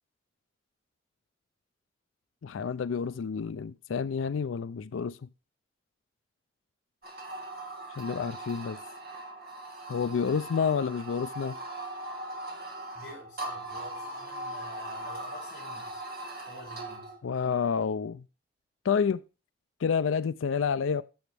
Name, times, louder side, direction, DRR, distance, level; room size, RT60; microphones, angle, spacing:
voice 1, 2.4-5.2 8.0-8.8 9.9-11.6 17.2-18.2 18.8-19.2 19.8-21.0, left 6 dB, 90° left, 0.4 m, -29 dB
sound 1, 7.0-17.2, right 1 dB, 55° right, 2.2 m, -40 dB
voice 2, 12.9-16.0 16.5-17.1, left 1 dB, 50° left, 6.3 m, -48 dB
15.0 x 6.2 x 3.4 m
head